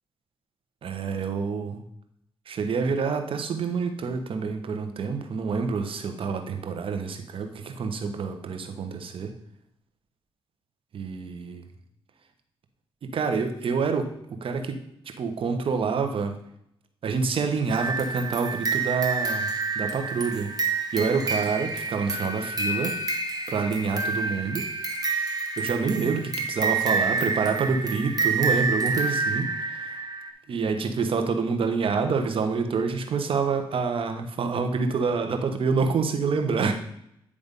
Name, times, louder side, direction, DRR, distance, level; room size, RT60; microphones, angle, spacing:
voice 1, 0.8-1.8 2.5-9.3 10.9-11.6 13.0-14.8 15.2-16.4 17.0-20.5 20.9-23.0 23.5-24.7 25.6-30.0 30.5-36.7, right 5 dB, 65° right, 6 dB, 1.1 m, -27 dB
sound 1, 17.7-30.3, right 4 dB, 40° right, 1.5 m, -28 dB
9.7 x 3.5 x 5.3 m, 0.74 s
cardioid pair, 60°, 10 cm